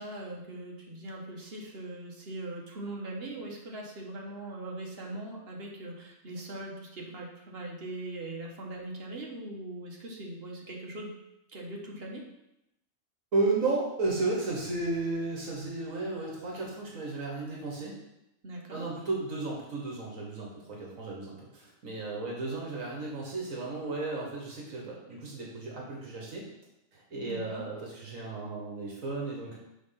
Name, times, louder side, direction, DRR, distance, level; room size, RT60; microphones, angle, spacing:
voice 1, 0.0-11.1 11.5-12.2 18.4-18.8 27.2-27.6, right 2 dB, 45° right, -1 dB, 1.3 m, -40 dB
voice 2, 13.3-17.9 18.7-26.4 26.9-29.6, right 3 dB, 65° right, -2 dB, 1.6 m, -33 dB
6.0 x 3.8 x 5.7 m, 0.87 s
omnidirectional pair, 1.5 m